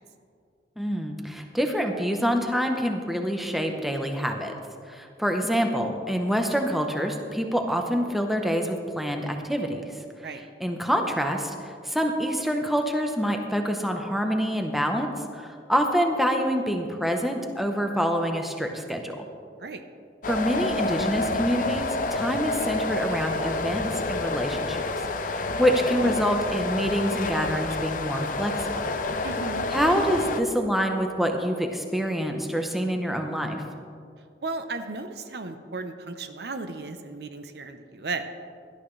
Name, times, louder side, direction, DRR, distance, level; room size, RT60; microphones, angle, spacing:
voice 1, 0.8-4.6 4.9-9.8 10.6-15.1 15.3-19.2 20.3-24.8 25.2-28.8 29.7-33.6, equal, ahead, 3 dB, 0.9 m, -26 dB
sound 1, 20.2-30.4, left 2 dB, 50° left, 0.7 m, -29 dB
voice 2, 29.2-29.7 34.4-38.2, right 3 dB, 65° right, 8 dB, 0.8 m, -35 dB
17.0 x 12.0 x 3.3 m, 2.3 s
head